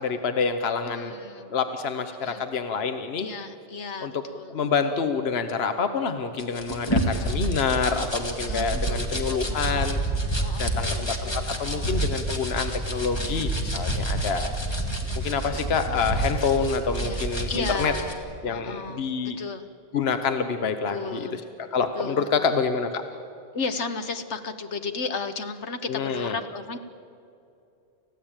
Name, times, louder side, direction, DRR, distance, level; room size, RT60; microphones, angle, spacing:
voice 1, 0.0-1.2 1.5-3.3 4.0-4.2 4.5-10.0 10.6-14.5 15.2-17.9 18.4-19.4 19.9-21.3 21.7-23.0 25.9-26.4, left 5 dB, 65° left, 8 dB, 1.2 m, -27 dB
voice 2, 0.8-1.6 2.2-2.4 3.2-4.7 6.9-7.5 8.5-9.9 10.4-12.0 13.0-13.8 14.4-15.8 17.0-19.7 20.9-21.4 21.9-22.5 23.5-26.8, left 4 dB, 90° left, 8 dB, 1.5 m, -35 dB
sound 1, 6.4-18.1, right 1 dB, 25° left, 2.0 m, -28 dB
29.5 x 15.0 x 8.9 m, 2.6 s
omnidirectional pair, 1.1 m